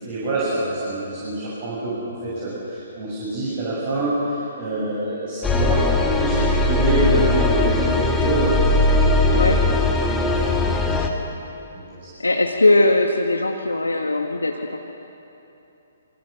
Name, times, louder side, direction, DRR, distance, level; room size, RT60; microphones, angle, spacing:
voice 1, 0.0-10.9 11.7-12.0, right 1 dB, 40° right, -6 dB, 7.2 m, -26 dB
sound 1, 5.4-11.1, left 2 dB, 10° left, 1.9 m, -19 dB
voice 2, 12.2-14.8, left 2 dB, 75° left, 3 dB, 1.5 m, -19 dB
26.0 x 24.5 x 6.6 m, 3.0 s
figure-of-eight pair, 130°, 0 cm